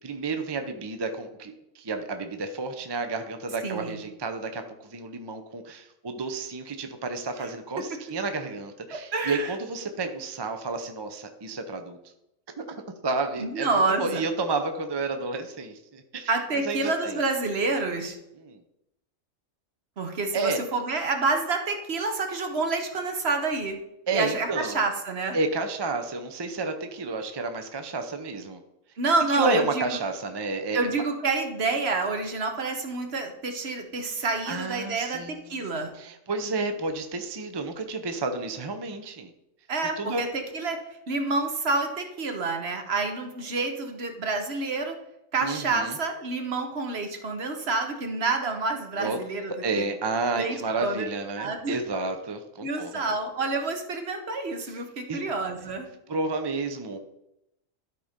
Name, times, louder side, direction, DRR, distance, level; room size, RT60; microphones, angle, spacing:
voice 1, 0.0-12.0 12.6-17.2 18.4-18.6 20.3-20.6 24.1-24.8 25.3-28.6 29.3-31.0 34.2-39.3 40.0-40.2 45.4-46.0 49.0-49.2 49.6-53.0 54.7-54.8 55.1-55.2 56.1-57.0, right 3 dB, 30° right, 7 dB, 0.5 m, -31 dB
voice 2, 3.6-4.0 7.4-7.5 8.9-9.5 13.4-14.2 16.3-18.2 20.0-23.8 24.1-25.4 29.0-30.0 30.7-35.9 39.7-40.8 41.1-45.0 45.3-49.9 50.3-50.5 50.8-51.1 51.4-51.8 52.6-55.9, right 3 dB, 55° right, 5 dB, 1.3 m, -28 dB
12.5 x 4.2 x 5.1 m, 0.87 s
omnidirectional pair, 1.4 m